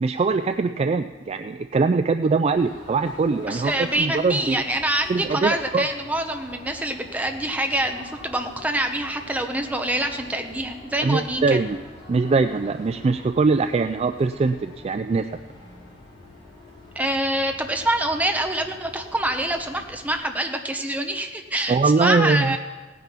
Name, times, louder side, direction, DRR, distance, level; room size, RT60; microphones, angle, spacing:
voice 1, 0.0-3.7 4.0-4.6 5.1-5.9 11.0-11.8 12.1-15.4 21.7-22.6, right 4 dB, 30° right, 9 dB, 0.3 m, -22 dB
sound 1, 2.5-20.2, left 1 dB, 30° left, 4.3 m, -45 dB
voice 2, 3.5-11.6 16.9-22.6, right 1 dB, 10° right, 5 dB, 1.1 m, -25 dB
17.0 x 9.4 x 5.8 m, 1.3 s
head